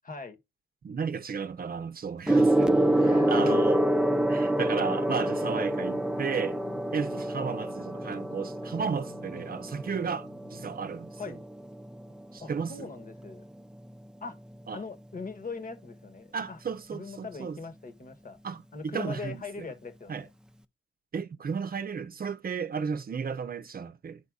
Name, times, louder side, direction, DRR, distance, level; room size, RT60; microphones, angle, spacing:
voice 1, 0.0-0.4 3.0-3.8 11.2-11.4 12.4-13.4 14.2-14.4 14.7-16.6 16.9-18.4 18.7-20.3, left 4 dB, 45° left, 1.3 m, -41 dB
voice 2, 0.8-3.8 4.3-6.6 6.9-11.2 12.3-12.9 14.7-14.8 16.3-17.6 18.4-19.4 20.1-20.3 21.1-24.2, right 6 dB, 50° right, 0.6 m, -34 dB
Gong, 2.3-12.0 13.0-13.2, right 1 dB, 5° right, 0.6 m, -27 dB
sound 1, 2.7-10.7, left 4 dB, 70° left, 1.5 m, -50 dB
12.0 x 4.1 x 2.3 m
wide cardioid pair, 105°, 20 cm